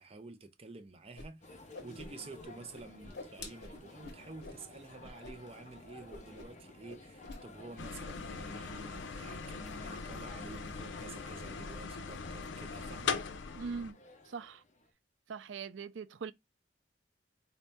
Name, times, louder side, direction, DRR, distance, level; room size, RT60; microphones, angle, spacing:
voice 1, 0.0-13.2, right 3 dB, 30° right, 0.6 m, -50 dB
Whoosh swoosh swish, 1.2-1.3 1.5-2.5 2.7-4.6 5.0-5.3 5.6-5.8 6.1-6.6 6.9-7.4, left 2 dB, 60° left, 1.0 m, -47 dB
sound 1, 1.4-14.9, left 2 dB, 40° left, 0.8 m, -53 dB
sound 2, 7.8-13.9, left 5 dB, 85° left, 0.5 m, -40 dB
voice 2, 13.6-14.0 14.3-14.6 15.3-16.3, right 5 dB, 85° right, 0.4 m, -41 dB
4.0 x 2.7 x 3.4 m
head